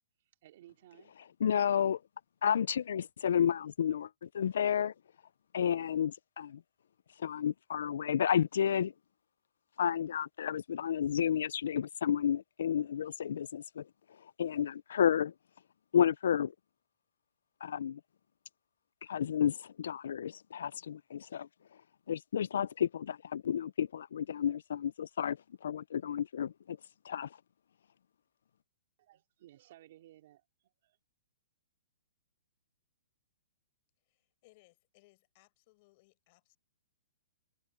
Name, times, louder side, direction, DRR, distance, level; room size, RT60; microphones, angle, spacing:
voice 1, 0.2-1.2 29.0-31.0, right 14 dB, 45° right, 3.3 m, -59 dB
voice 2, 1.4-2.0 2.4-4.9 5.5-6.6 7.2-8.9 9.8-13.9 14.2-15.3 15.9-16.5 17.6-18.0 19.0-21.5 22.1-26.8 27.0-27.4, left 8 dB, 70° left, 0.3 m, -31 dB
voice 3, 34.0-36.6, left 23 dB, 35° left, 4.8 m, -66 dB
hypercardioid pair, 165°, 0 cm